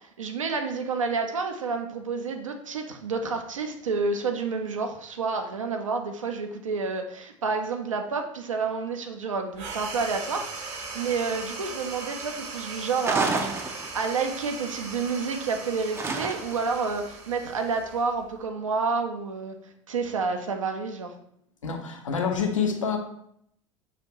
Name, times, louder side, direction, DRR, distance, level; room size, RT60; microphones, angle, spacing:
voice 1, 0.2-13.5 13.9-19.5 19.9-21.1, right 4 dB, 75° right, 4 dB, 0.5 m, -29 dB
sound 1, 9.5-18.4, right 4 dB, 40° right, 0.7 m, -39 dB
sound 2, 13.0-14.2 16.0-16.7, right 3 dB, 15° right, 0.4 m, -29 dB
voice 2, 21.6-23.0, left 6 dB, 75° left, 4 dB, 0.6 m, -27 dB
5.7 x 2.5 x 2.9 m, 0.71 s
figure-of-eight pair, 70°, 17 cm